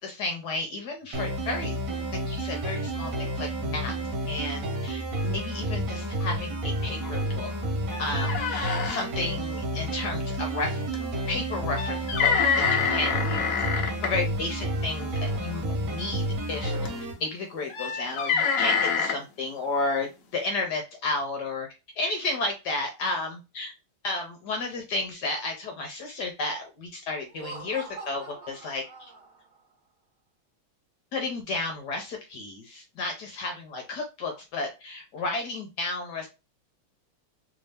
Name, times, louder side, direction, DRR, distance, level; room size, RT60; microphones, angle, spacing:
voice 1, 0.0-1.8 2.3-3.9 4.3-7.5 8.0-10.8 11.3-12.3 12.7-13.6 14.0-16.7 17.2-21.7 22.0-23.7 24.0-28.8 31.1-36.3, left 3 dB, 65° left, 3 dB, 1.1 m, -32 dB
sound 1, 1.1-17.1, right 1 dB, 75° right, 1.7 m, -30 dB
sound 2, 7.0-7.1 7.5-7.6 7.9-9.0 10.9-11.1 11.8-14.1 15.2-15.5 16.6-17.0 17.7-19.2, left 6 dB, 90° left, 0.7 m, -26 dB
Laughter, 27.2-29.6, right 4 dB, 55° right, 1.6 m, -43 dB
3.4 x 2.7 x 3.3 m, 0.27 s
omnidirectional pair, 2.3 m